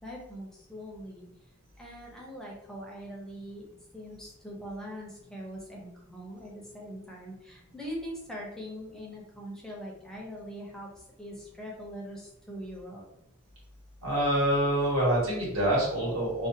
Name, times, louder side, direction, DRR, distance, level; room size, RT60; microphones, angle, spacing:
voice 1, 0.0-1.2 1.8-3.7 3.9-10.9 11.2-13.0, equal, 5° left, -3 dB, 0.6 m, -42 dB
voice 2, 14.0-16.5, right 1 dB, 65° right, -5 dB, 1.2 m, -26 dB
2.4 x 2.3 x 2.6 m, 0.80 s
head